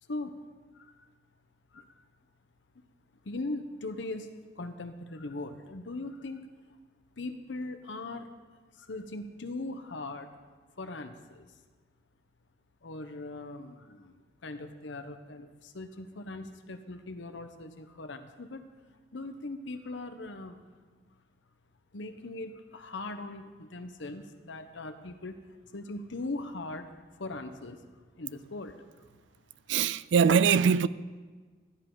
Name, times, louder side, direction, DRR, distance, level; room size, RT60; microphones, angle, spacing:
voice 1, 0.7-1.1 1.7-2.0 3.2-6.5 7.2-8.3 8.7-10.3 10.8-11.4 12.8-14.2 14.4-18.7 19.1-20.6 21.9-25.4 25.7-27.8 28.2-28.8, left 2 dB, 85° left, 0.9 m, -40 dB
voice 2, 29.7-30.9, right 6 dB, 80° right, 0.4 m, -22 dB
15.0 x 11.5 x 3.9 m
head